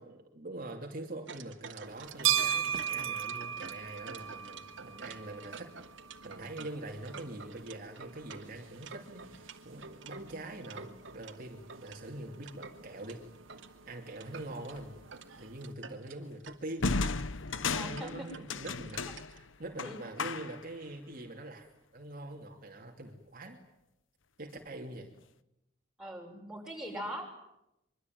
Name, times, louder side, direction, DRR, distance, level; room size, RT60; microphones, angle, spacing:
voice 1, 0.0-5.7 6.2-13.2 13.9-15.0 15.4-17.0 17.5-21.7 21.9-23.6 24.4-25.1 26.8-26.9, right 1 dB, 45° right, 1 dB, 2.8 m, -44 dB
sound 1, 1.3-11.4 11.7-13.7 14.1-14.8 15.1-15.3 15.5-19.4, right 5 dB, 65° right, 2.6 m, -49 dB
sound 2, 1.9-15.7, right 9 dB, 85° right, 1.7 m, -39 dB
sound 3, 14.7-15.0 16.8-20.7, left 4 dB, 75° left, 1.0 m, -35 dB
voice 2, 17.7-18.1 19.8-20.0 26.0-27.2, equal, 5° right, 0 dB, 6.8 m, -41 dB
25.0 x 24.5 x 9.4 m, 0.88 s
head